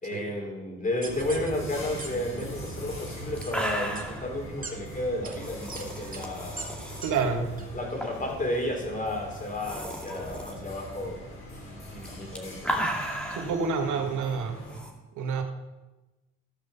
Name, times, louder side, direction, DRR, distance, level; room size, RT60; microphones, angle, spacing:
voice 1, 0.0-6.7 7.2-7.3 7.7-11.2 11.6-12.8, left 1 dB, 25° left, 1 dB, 3.7 m, -32 dB
sound 1, 1.0-1.5 2.0-2.1 2.4-2.7 3.4-3.5 3.9-4.0 4.6-4.7 5.2-5.3 5.7-5.8 6.1-6.2 6.6-6.7 7.0-7.1 7.6-7.7, right 4 dB, 30° right, 2.0 m, -39 dB
sound 2, 1.1-14.8, equal, 45° left, 3.5 m, -42 dB
sound 3, 3.1-3.2 3.4-4.3 5.3-7.1 8.0-8.3 8.6-8.7 9.3-10.5 12.0-13.5 14.7-14.9, equal, 5° left, 2.2 m, -34 dB
voice 2, 7.0-7.5 13.3-14.5 15.1-15.4, right 5 dB, 75° right, 4 dB, 1.7 m, -28 dB
15.5 x 5.4 x 6.9 m, 1.1 s
cardioid pair, 90°, 30 cm